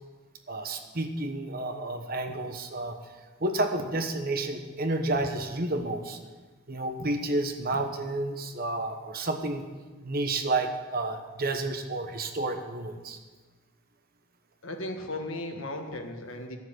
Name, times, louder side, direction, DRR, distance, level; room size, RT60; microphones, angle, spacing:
voice 1, 0.5-2.9 3.4-6.2 6.7-9.6 10.0-13.2, right 2 dB, 45° right, 6 dB, 1.1 m, -30 dB
voice 2, 14.6-16.6, left 1 dB, 75° left, 4 dB, 1.6 m, -36 dB
13.0 x 7.1 x 8.1 m, 1.3 s
head